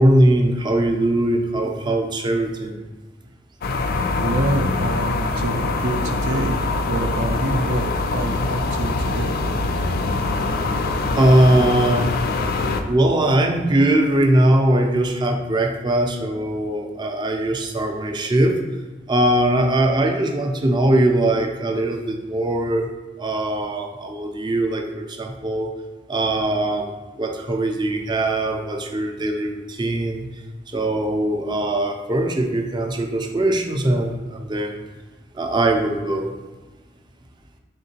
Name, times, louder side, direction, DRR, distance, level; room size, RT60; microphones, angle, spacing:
voice 1, 0.0-2.7 11.2-12.1 12.9-18.6 19.1-22.9 23.2-25.7 26.1-26.9 27.2-30.3 30.7-34.7 35.3-36.3, right 1 dB, 25° right, 3 dB, 0.4 m, -20 dB
sound 1, 3.6-12.8, left 3 dB, 55° left, 0.3 m, -23 dB
voice 2, 4.2-9.3, right 2 dB, 85° right, 5 dB, 0.5 m, -26 dB
3.7 x 3.6 x 2.8 m, 1.3 s
head